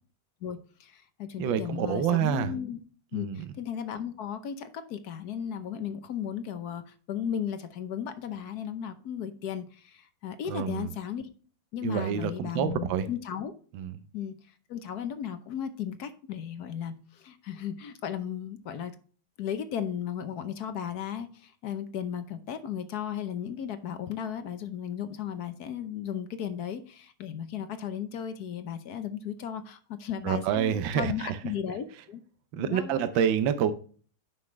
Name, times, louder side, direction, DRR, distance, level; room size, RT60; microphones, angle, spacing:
voice 1, 0.4-2.8 3.1-11.3 11.7-13.5 14.1-14.3 14.7-18.9 19.4-32.2 32.6-33.1, left 9 dB, 60° left, 1.2 m, -35 dB
voice 2, 1.4-2.5 3.1-3.4 10.5-10.9 11.8-13.1 13.7-14.0 30.2-31.4 32.5-33.7, right 9 dB, 75° right, 1.4 m, -27 dB
9.5 x 5.8 x 3.2 m
omnidirectional pair, 2.1 m